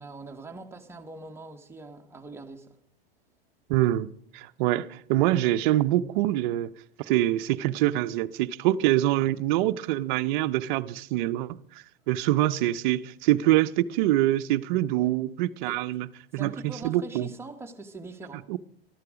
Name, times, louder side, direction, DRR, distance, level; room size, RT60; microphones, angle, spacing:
voice 1, 0.0-2.8 15.0-15.2 15.7-15.8 16.3-18.5, right 3 dB, 10° right, 1.4 m, -42 dB
voice 2, 3.7-4.1 4.3-6.7 7.0-11.6 12.1-16.1 16.3-17.3 18.5-18.6, right 14 dB, 55° right, 0.7 m, -25 dB
14.0 x 12.0 x 5.0 m
hypercardioid pair, 120°, 30 cm